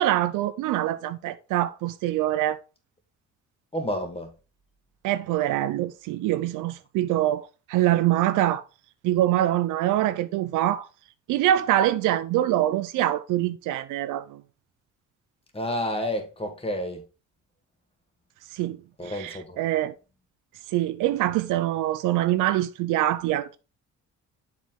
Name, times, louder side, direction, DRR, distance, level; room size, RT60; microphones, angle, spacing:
voice 1, 0.0-2.6 5.0-8.6 9.0-10.9 11.3-14.4 18.5-19.9 20.7-23.6, right 13 dB, 90° right, 0.5 m, -24 dB
voice 2, 3.7-4.3 15.5-17.0 19.0-19.6, equal, 20° left, 2.0 m, -30 dB
7.2 x 4.7 x 3.7 m
cardioid pair, 90°, 30 cm